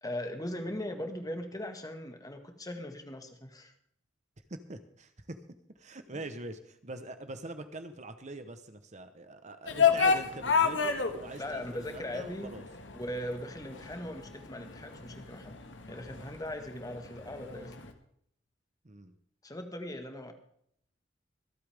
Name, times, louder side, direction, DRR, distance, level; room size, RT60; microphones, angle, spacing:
voice 1, 0.0-3.7 6.1-6.2 11.4-12.5 12.9-15.5 15.9-17.9 19.4-20.3, left 1 dB, 20° left, 6 dB, 1.8 m, -39 dB
voice 2, 4.5-5.4 5.8-12.6 18.8-19.1, right 2 dB, 40° right, 9 dB, 1.1 m, -43 dB
sound 1, 9.7-17.9, left 6 dB, 85° left, 1.8 m, -31 dB
25.5 x 8.6 x 3.6 m, 0.68 s
head